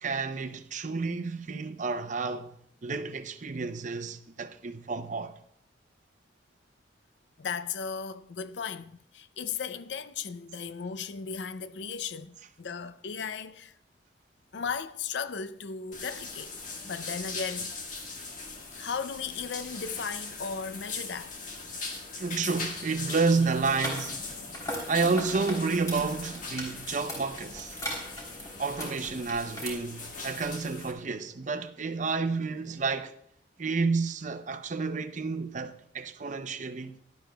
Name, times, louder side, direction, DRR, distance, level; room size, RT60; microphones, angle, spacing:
voice 1, 0.0-2.6 2.8-5.3 22.2-24.2 24.9-27.8 28.6-33.1 33.6-36.9, right 4 dB, 45° right, 0.7 m, -30 dB
voice 2, 7.4-13.7 14.5-16.5 16.8-17.7 18.7-21.3, left 6 dB, 75° left, 0.5 m, -36 dB
sound 1, 15.9-30.9, left 3 dB, 45° left, 1.7 m, -40 dB
sound 2, 23.6-29.7, equal, 20° left, 3.4 m, -39 dB
16.5 x 11.5 x 2.3 m
head